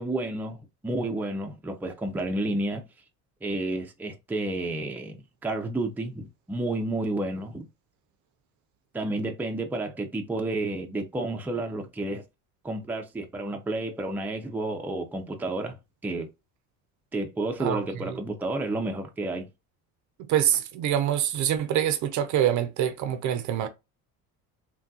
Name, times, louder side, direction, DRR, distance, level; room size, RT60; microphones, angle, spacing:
voice 1, 0.0-2.8 3.4-7.7 8.9-12.2 12.6-15.8 16.0-16.3 17.1-19.5, right 2 dB, 5° right, 0.5 m, -31 dB
voice 2, 17.6-18.2 20.3-23.7, right 10 dB, 55° right, 0.5 m, -25 dB
3.5 x 2.2 x 2.7 m
cardioid pair, 115°, 35 cm